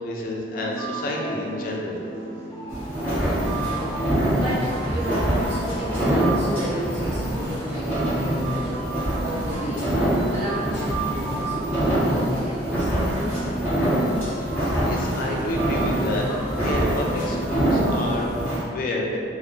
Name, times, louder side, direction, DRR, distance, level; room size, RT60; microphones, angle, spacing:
voice 1, 0.0-2.0 14.4-14.5 14.8-19.2, left 1 dB, 50° left, -1 dB, 0.4 m, -29 dB
sound 1, 0.5-18.4, right 2 dB, 25° left, 0.7 m, -35 dB
sound 2, 2.7-18.6, right 1 dB, 10° right, 1.0 m, -25 dB
voice 2, 2.9-13.4, right 1 dB, 40° right, -11 dB, 0.6 m, -33 dB
2.1 x 2.0 x 3.0 m, 2.3 s
head